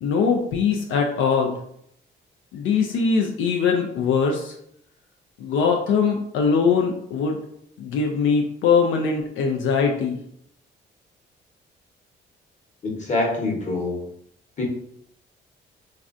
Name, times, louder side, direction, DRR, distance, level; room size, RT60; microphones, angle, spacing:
voice 1, 0.0-1.6 2.5-4.5 5.4-7.4 7.8-10.2, left 5 dB, 80° left, 1 dB, 0.4 m, -21 dB
voice 2, 12.8-14.1 14.6-14.7, left 2 dB, 35° left, -1 dB, 1.0 m, -25 dB
3.2 x 2.4 x 2.4 m, 0.73 s
cardioid pair, 90°, 20 cm